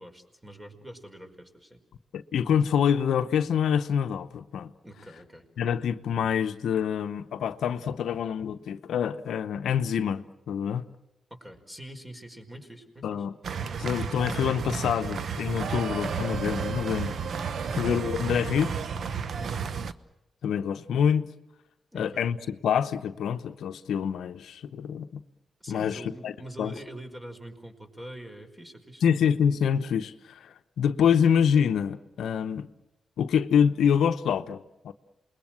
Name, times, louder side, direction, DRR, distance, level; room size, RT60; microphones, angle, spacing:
voice 1, 0.0-1.8 4.8-5.5 11.3-13.3 17.6-17.9 19.4-19.7 21.9-22.3 25.6-29.0, right 1 dB, 15° right, 5.1 m, -44 dB
voice 2, 2.1-4.7 5.6-10.8 13.0-13.3 13.8-17.5 17.8-18.7 20.4-21.3 21.9-25.1 25.7-26.3 26.6-26.7 29.0-32.7 33.2-34.9, left 8 dB, 80° left, 0.8 m, -26 dB
sound 1, 13.4-19.9, right 6 dB, 65° right, 0.9 m, -32 dB
28.0 x 21.0 x 7.5 m
cardioid pair, 60°, 0 cm